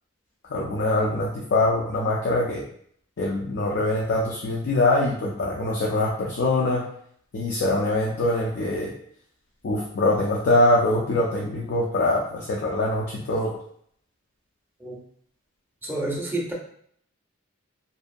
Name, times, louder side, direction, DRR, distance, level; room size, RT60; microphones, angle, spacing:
voice 1, 0.5-2.6 3.2-6.8 7.3-8.9 9.6-13.5, left 2 dB, 55° left, -3 dB, 0.4 m, -23 dB
voice 2, 15.8-16.5, right 1 dB, 10° right, -2 dB, 0.5 m, -29 dB
2.7 x 2.2 x 2.5 m, 0.65 s
head